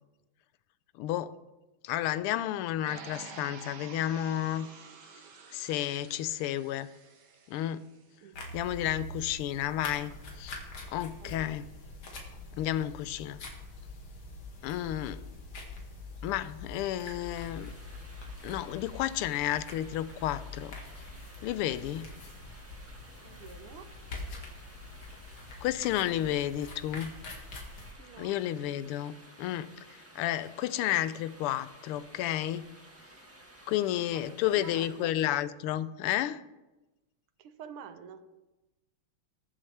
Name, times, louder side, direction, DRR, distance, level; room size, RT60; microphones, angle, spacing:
voice 1, 1.0-1.3 1.8-4.7 5.5-6.9 7.5-7.8 8.5-10.6 10.9-11.6 12.6-13.4 14.6-15.2 16.2-17.7 18.4-20.8 21.4-22.1 25.6-27.1 28.2-29.7 30.1-32.7 33.7-36.4, left 12 dB, 85° left, 15 dB, 1.5 m, -31 dB
sound 1, 2.9-7.9, right 5 dB, 55° right, 1.6 m, -49 dB
sound 2, 8.3-27.9, left 2 dB, 70° left, 2.6 m, -44 dB
voice 2, 11.2-11.7 23.2-23.9 28.0-28.3 34.1-35.2 37.4-38.2, right 7 dB, 90° right, 9 dB, 1.8 m, -48 dB
sound 3, 17.2-35.2, right 1 dB, 10° right, 1.2 m, -55 dB
20.5 x 7.4 x 3.4 m, 1.1 s
omnidirectional pair, 2.4 m